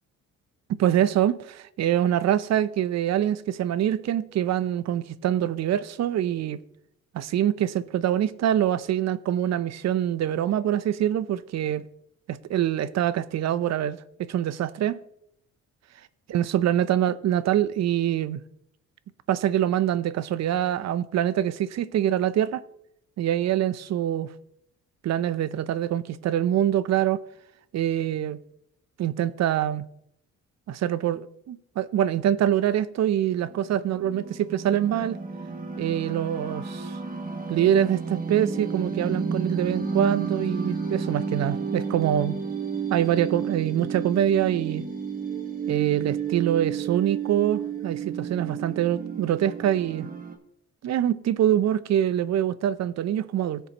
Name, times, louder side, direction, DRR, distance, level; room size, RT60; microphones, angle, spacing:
voice 1, 0.8-6.6 7.1-11.8 12.3-15.0 16.3-18.4 19.3-22.6 23.2-24.3 25.0-27.2 27.7-28.4 29.0-29.9 30.7-35.2 35.8-36.9 37.5-42.4 42.9-44.8 45.7-50.1 50.8-53.6, right 11 dB, 60° right, 0.6 m, -25 dB
sound 1, 33.4-50.4, right 5 dB, 30° right, 1.6 m, -32 dB
16.5 x 7.0 x 2.9 m
cardioid pair, 90°, 30 cm